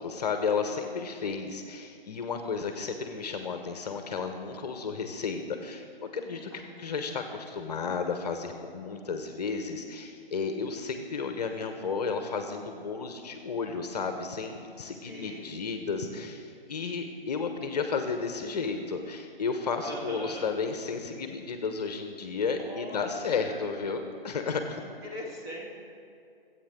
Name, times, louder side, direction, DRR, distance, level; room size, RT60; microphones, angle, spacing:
voice 1, 0.0-5.8 6.1-6.5 6.8-24.8, left 5 dB, 45° left, 6 dB, 1.0 m, -33 dB
voice 2, 6.5-7.2 14.9-15.6 19.8-20.5 22.6-23.7 24.8-25.7, equal, 20° right, -3 dB, 2.4 m, -42 dB
26.0 x 8.8 x 3.7 m, 2.4 s
figure-of-eight pair, 135°, 29 cm